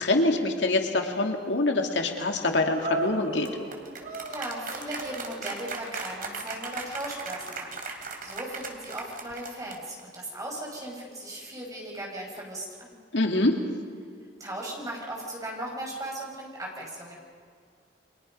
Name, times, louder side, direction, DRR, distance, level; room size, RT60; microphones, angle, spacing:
voice 1, 0.0-3.5 13.1-13.6, left 2 dB, 75° left, 3 dB, 2.4 m, -25 dB
sound 1, 2.6-10.0, right 3 dB, 50° right, 3.0 m, -36 dB
voice 2, 4.3-7.7 8.2-13.0 14.4-17.2, right 1 dB, 20° right, -1 dB, 6.5 m, -37 dB
30.0 x 24.0 x 5.5 m, 2.1 s
head